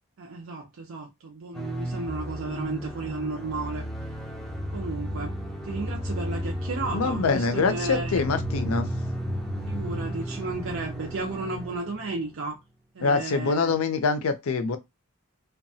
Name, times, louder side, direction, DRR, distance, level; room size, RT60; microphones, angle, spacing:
voice 1, 0.2-3.9 4.7-5.4 5.6-8.2 9.7-12.6 12.9-13.8, right 3 dB, 60° right, 0.5 m, -34 dB
sound 1, 1.5-12.3, equal, 5° left, 0.5 m, -33 dB
voice 2, 6.9-8.9 13.0-14.8, left 4 dB, 65° left, 0.5 m, -24 dB
2.7 x 2.2 x 2.7 m
head